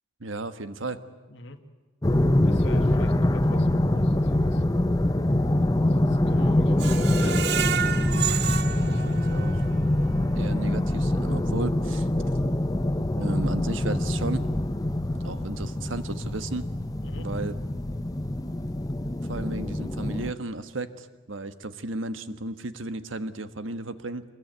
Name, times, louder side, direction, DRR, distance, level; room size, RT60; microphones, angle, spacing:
voice 1, 0.2-1.0 8.9-9.7 10.3-12.1 13.2-14.5 15.2-16.7 17.2-17.5 19.2-24.2, right 2 dB, 80° right, 11 dB, 1.3 m, -34 dB
voice 2, 1.3-1.6 2.4-4.6 5.7-8.1 8.5-9.0 17.0-17.3, left 2 dB, 65° left, 4 dB, 1.8 m, -44 dB
sound 1, 2.0-20.3, left 1 dB, 20° left, 0.7 m, -24 dB
Screech, 6.8-9.8 10.2-10.3 10.7-10.8, right 9 dB, 55° right, 0.7 m, -30 dB
24.5 x 21.5 x 9.2 m, 1.2 s
head